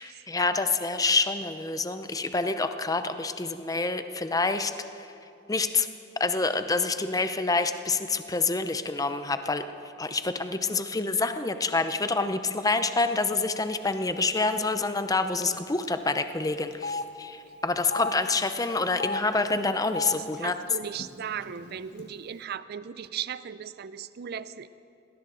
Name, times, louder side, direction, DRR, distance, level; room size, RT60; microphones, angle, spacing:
voice 1, 0.0-4.7 5.5-5.9 6.2-9.6 10.0-20.5, left 3 dB, 20° left, 9 dB, 0.6 m, -27 dB
Telephone, 13.9-14.1 14.4-14.5 15.4-15.6 15.8-15.9 16.7-17.0 17.8-18.1 18.9-19.2 19.8-20.1 21.0-21.1 21.3-22.0, left 3 dB, 55° left, 1.2 m, -33 dB
voice 2, 20.1-24.7, right 8 dB, 50° right, 15 dB, 0.4 m, -37 dB
20.0 x 17.5 x 3.9 m, 2.8 s
head